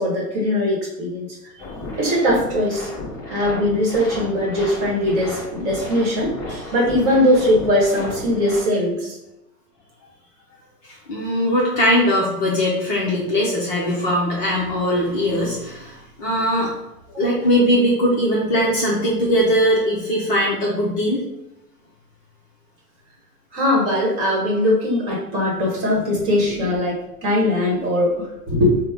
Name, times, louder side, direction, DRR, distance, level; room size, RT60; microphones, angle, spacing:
voice 1, 0.0-1.5 2.0-2.9 3.2-9.2 17.1-17.2 23.5-28.8, left 1 dB, 25° right, -3 dB, 1.2 m, -20 dB
sound 1, 1.6-8.6, left 2 dB, 5° left, 0.9 m, -34 dB
voice 2, 10.8-16.7 17.2-21.2, equal, 25° left, -5 dB, 0.6 m, -20 dB
4.3 x 2.1 x 3.4 m, 0.91 s
hypercardioid pair, 125°, 47 cm